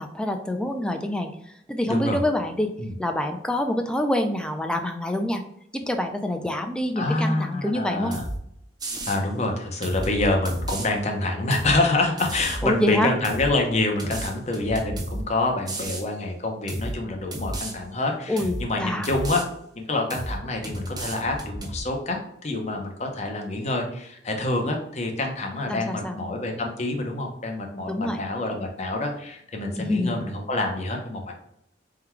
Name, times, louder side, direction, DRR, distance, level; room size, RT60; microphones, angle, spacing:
voice 1, 0.0-2.7 3.0-5.4 5.7-8.1 12.6-13.1 18.3-19.1 25.7-26.2 27.9-28.2 29.8-30.2, left 1 dB, 5° left, 5 dB, 0.4 m, -26 dB
voice 2, 1.9-2.2 2.8-2.9 7.0-8.2 9.1-19.4 19.7-22.2 22.4-31.3, left 2 dB, 40° left, 2 dB, 0.7 m, -27 dB
sound 1, 8.1-8.4 8.8-9.2 9.8-10.9 11.5-11.8 12.2-12.7 13.2-13.5 14.0-15.2 15.7-16.0 16.7-16.9 17.3-17.7 18.4-18.6 19.0-19.4 20.1-20.4 20.6-21.8, right 1 dB, 25° right, 0.7 m, -32 dB
3.7 x 2.2 x 4.4 m, 0.75 s
head